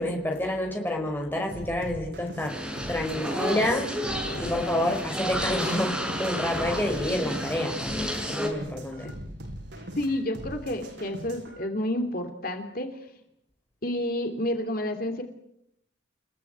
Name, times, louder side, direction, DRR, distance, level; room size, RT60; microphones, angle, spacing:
voice 1, 0.0-2.6 2.9-9.1, left 1 dB, 10° left, 5.2 m, -29 dB
sound 1, 1.5-11.6, equal, 75° right, 7.6 m, -41 dB
sound 2, 2.5-8.5, equal, 5° right, 5.3 m, -31 dB
voice 2, 10.0-12.9 13.8-15.2, left 1 dB, 50° left, 2.8 m, -30 dB
29.5 x 16.0 x 9.4 m
head